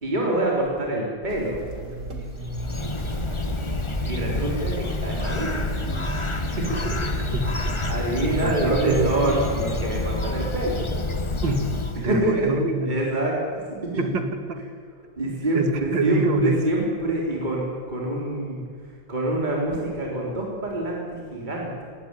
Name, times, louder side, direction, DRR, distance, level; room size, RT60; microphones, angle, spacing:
voice 1, 0.0-1.6 4.0-5.6 6.3-10.8 12.0-12.5 12.9-13.3 13.9-14.0 15.2-21.8, right 1 dB, 20° right, -2 dB, 3.8 m, -26 dB
sound 1, 1.3-8.5, right 1 dB, 40° right, 2.4 m, -35 dB
Bird, 2.3-12.3, left 2 dB, 20° left, 0.9 m, -28 dB
voice 2, 6.9-7.4 8.3-9.3 11.4-11.6 12.0-13.0 14.0-14.6 15.5-16.6, right 3 dB, 65° right, 7 dB, 2.6 m, -25 dB
19.0 x 17.5 x 9.7 m, 2.1 s
omnidirectional pair, 2.1 m